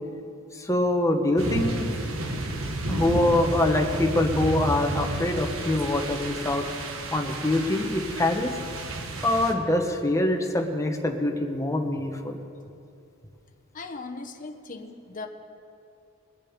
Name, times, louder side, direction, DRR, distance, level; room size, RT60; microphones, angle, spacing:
voice 1, 0.5-1.9 2.9-6.6 7.1-8.6 9.2-12.4, left 1 dB, 15° left, 4 dB, 1.1 m, -24 dB
sound 1, 1.4-9.5, right 2 dB, 75° right, 1.3 m, -32 dB
voice 2, 13.7-15.3, left 3 dB, 40° left, 5 dB, 1.0 m, -38 dB
22.5 x 7.5 x 5.2 m, 2.6 s
head